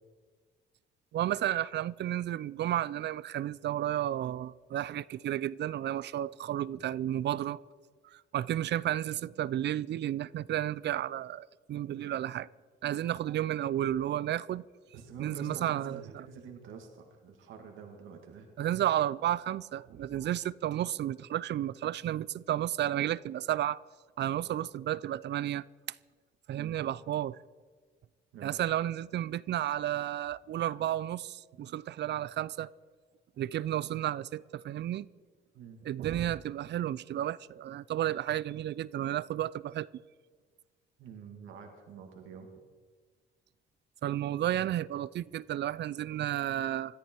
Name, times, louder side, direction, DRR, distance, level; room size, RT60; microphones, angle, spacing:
voice 1, 1.1-7.6 8.1-12.5 12.8-14.6 15.2-16.0 18.6-23.8 24.2-25.6 26.5-27.4 28.4-32.7 33.4-35.1 35.8-39.9 44.0-47.0, right 12 dB, 60° right, 0.5 m, -32 dB
voice 2, 14.9-18.5 19.9-20.0 26.6-26.9 28.3-28.5 35.5-35.8 41.0-42.5, right 5 dB, 85° right, 2.2 m, -47 dB
21.5 x 13.5 x 4.6 m
cardioid pair, 90°, 20 cm